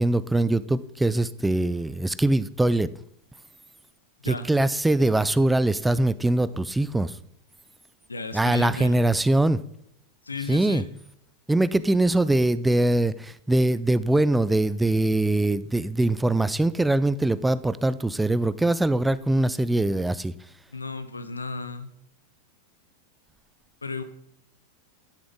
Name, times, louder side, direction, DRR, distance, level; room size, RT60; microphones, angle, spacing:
voice 1, 0.0-2.9 4.2-7.1 8.3-9.6 10.5-10.8 11.5-20.3, right 2 dB, 5° right, 16 dB, 0.4 m, -22 dB
voice 2, 8.1-9.1 10.2-10.9 20.7-21.9 23.8-24.0, left 3 dB, 80° left, 10 dB, 0.9 m, -34 dB
10.5 x 8.7 x 3.8 m, 0.74 s
figure-of-eight pair, 90°, 0 cm